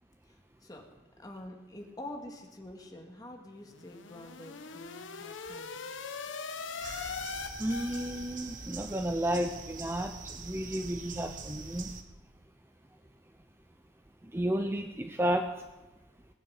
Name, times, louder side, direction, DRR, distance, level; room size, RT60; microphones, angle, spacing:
voice 1, 0.3-0.8 1.2-5.9, left 1 dB, 20° left, 2 dB, 2.0 m, -47 dB
sound 1, 3.7-8.7, left 5 dB, 75° left, 0.9 m, -41 dB
sound 2, 6.8-12.0, right 4 dB, 45° right, 1.2 m, -44 dB
voice 2, 7.6-11.9 14.2-15.5, equal, 15° right, 6 dB, 0.6 m, -32 dB
19.5 x 9.2 x 6.5 m, 1.1 s
head